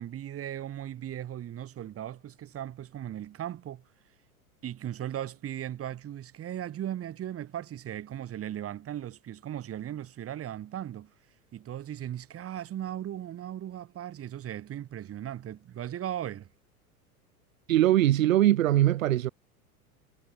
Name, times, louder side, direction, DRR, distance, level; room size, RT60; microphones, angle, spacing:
voice 1, 0.0-3.8 4.6-11.1 11.5-16.5, right 11 dB, 30° right, 5.7 m, -37 dB
voice 2, 17.7-19.3, right 13 dB, 60° right, 2.0 m, -22 dB
figure-of-eight pair, 85°, 45 cm